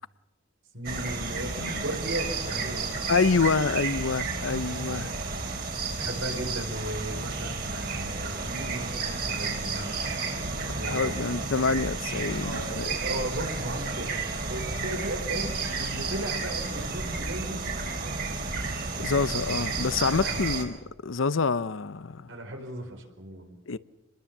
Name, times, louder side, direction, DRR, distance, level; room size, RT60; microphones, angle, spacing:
voice 1, 0.7-2.9 4.6-5.5 6.0-10.0 10.6-11.2 12.3-17.6 17.9-18.3 20.1-20.4 22.3-23.6, right 1 dB, 85° right, 4.6 m, -36 dB
sound 1, 0.8-20.6, right 4 dB, 50° right, 3.9 m, -32 dB
voice 2, 3.1-5.1 10.8-12.9 19.0-20.8 21.0-22.3 23.7-23.8, left 4 dB, 90° left, 0.8 m, -27 dB
26.5 x 21.0 x 7.3 m
head